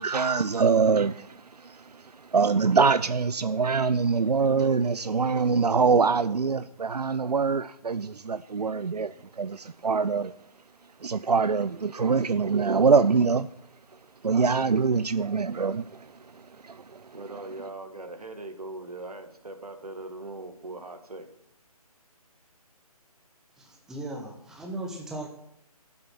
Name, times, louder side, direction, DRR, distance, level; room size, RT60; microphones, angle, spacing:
voice 1, 0.0-10.3 11.0-13.5 14.2-17.1, right 5 dB, 90° right, 0.4 m, -24 dB
voice 2, 17.1-21.3, right 2 dB, 70° right, 2.0 m, -40 dB
voice 3, 23.6-25.3, right 1 dB, 5° right, 0.8 m, -37 dB
11.0 x 7.7 x 6.1 m
figure-of-eight pair, 145°, 20 cm